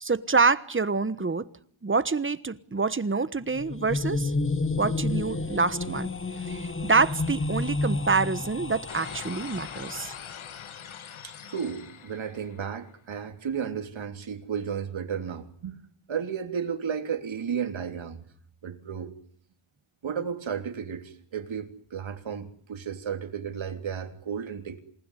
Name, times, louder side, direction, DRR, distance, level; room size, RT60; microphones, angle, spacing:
voice 1, 0.0-1.5 1.8-4.3 4.8-6.1 6.5-10.1, right 4 dB, 25° right, 1.3 m, -26 dB
sound 1, 3.4-10.4, left 3 dB, 25° left, 1.7 m, -31 dB
sound 2, 8.9-13.0, left 8 dB, 70° left, 1.9 m, -43 dB
voice 2, 11.2-15.8 16.1-18.2 18.6-19.1 20.0-24.8, right 7 dB, 65° right, 3.4 m, -33 dB
28.0 x 19.5 x 10.0 m
wide cardioid pair, 100°, 49 cm